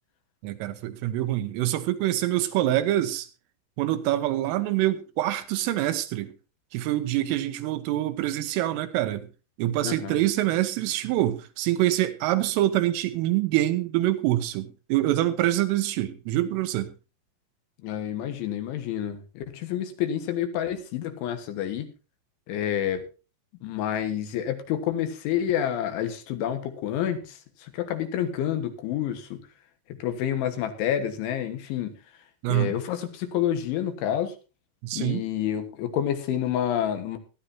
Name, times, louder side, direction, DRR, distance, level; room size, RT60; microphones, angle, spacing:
voice 1, 0.4-3.3 3.8-6.3 6.7-9.3 9.6-16.9 32.4-32.8 34.8-35.2, right 14 dB, 85° right, 3.6 m, -25 dB
voice 2, 9.8-10.2 17.8-21.9 22.5-23.1 23.6-29.4 30.0-31.9 32.5-34.4 34.9-37.2, left 10 dB, 75° left, 3.6 m, -28 dB
18.5 x 13.0 x 2.8 m
omnidirectional pair, 5.9 m